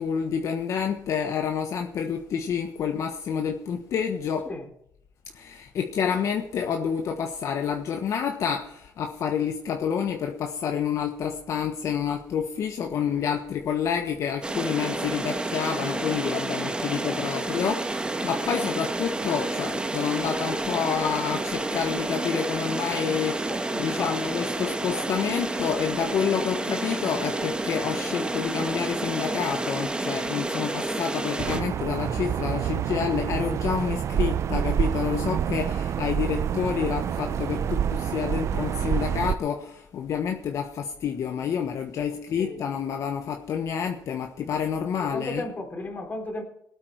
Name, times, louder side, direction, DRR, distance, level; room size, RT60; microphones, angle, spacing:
voice 1, 0.0-4.5 5.3-45.5, left 7 dB, 60° left, 4 dB, 1.3 m, -28 dB
sound 1, 14.4-31.6, right 2 dB, 15° right, 1.7 m, -30 dB
voice 2, 17.0-17.4 23.5-24.4 42.4-42.6 45.0-46.4, left 2 dB, 30° left, 3 dB, 4.0 m, -35 dB
sound 2, 31.4-39.4, right 9 dB, 55° right, 0.6 m, -27 dB
19.0 x 8.7 x 4.6 m, 0.76 s
cardioid pair, 110°, 6 cm